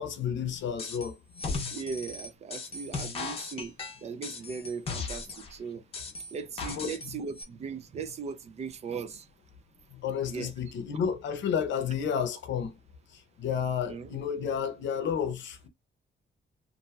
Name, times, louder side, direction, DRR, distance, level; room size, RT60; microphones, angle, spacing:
voice 1, 0.0-1.6 6.7-7.1 9.9-12.8 13.1-15.7, left 7 dB, 75° left, 0.6 m, -32 dB
sound 1, 0.8-1.1 1.4-5.5 5.9-7.1 7.4-7.5, left 4 dB, 30° left, 0.7 m, -36 dB
voice 2, 1.7-3.8 4.0-5.8 6.3-9.3 10.3-10.5 13.8-14.1, right 5 dB, 35° right, 0.4 m, -38 dB
2.8 x 2.6 x 2.3 m
wide cardioid pair, 175°, 19 cm